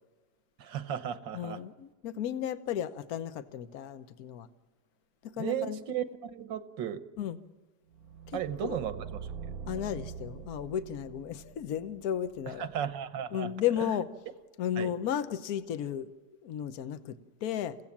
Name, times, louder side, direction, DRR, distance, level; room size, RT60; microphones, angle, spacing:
voice 1, 0.6-1.6 5.4-7.0 8.3-9.0 12.6-13.5 13.8-13.9 14.8-14.9, right 9 dB, 85° right, 1.8 m, -35 dB
voice 2, 1.3-4.5 5.2-5.8 7.2-7.4 8.3-8.8 9.7-12.7 13.3-14.1 14.6-16.1 16.4-17.8, left 10 dB, 60° left, 1.3 m, -34 dB
sound 1, 7.9-12.9, right 6 dB, 60° right, 1.2 m, -44 dB
30.0 x 16.5 x 7.3 m
omnidirectional pair, 2.0 m